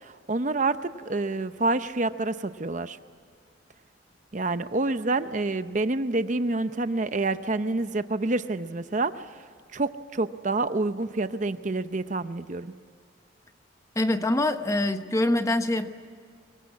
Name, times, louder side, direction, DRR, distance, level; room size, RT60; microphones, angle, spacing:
voice 1, 0.0-3.0 4.3-9.4 9.7-12.7, right 2 dB, 40° right, 11 dB, 0.7 m, -28 dB
voice 2, 14.0-15.9, left 1 dB, 15° left, 8 dB, 0.9 m, -24 dB
24.5 x 23.5 x 8.5 m, 2.2 s
head